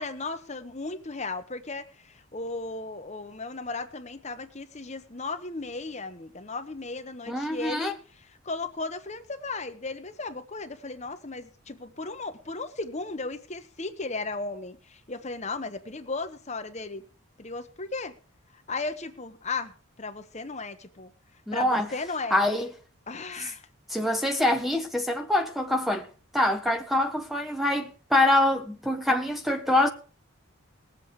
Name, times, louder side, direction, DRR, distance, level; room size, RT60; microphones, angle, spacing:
voice 1, 0.0-17.0 17.4-18.1 18.7-21.1 21.5-22.4 23.1-23.6, left 3 dB, 30° left, 1.0 m, -35 dB
voice 2, 7.3-7.9 21.5-21.9 22.3-22.7 23.9-26.1 26.3-29.9, left 1 dB, ahead, 0.7 m, -25 dB
19.5 x 7.8 x 4.9 m
head